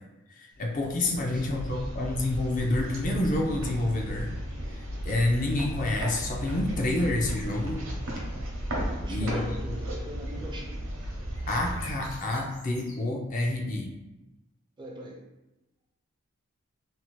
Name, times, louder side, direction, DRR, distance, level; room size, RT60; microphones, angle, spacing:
voice 1, 0.3-4.3 5.0-7.8 9.1-9.6 11.5-13.9, left 2 dB, 40° left, 1 dB, 0.4 m, -28 dB
sound 1, 0.7-12.8, equal, 70° right, 0.7 m, -35 dB
voice 2, 0.9-1.9 8.8-10.8 14.8-15.2, equal, 25° right, 0 dB, 0.4 m, -43 dB
sound 2, 11.3-14.0, left 1 dB, 75° left, 1.2 m, -50 dB
2.7 x 2.1 x 3.0 m, 1.0 s
head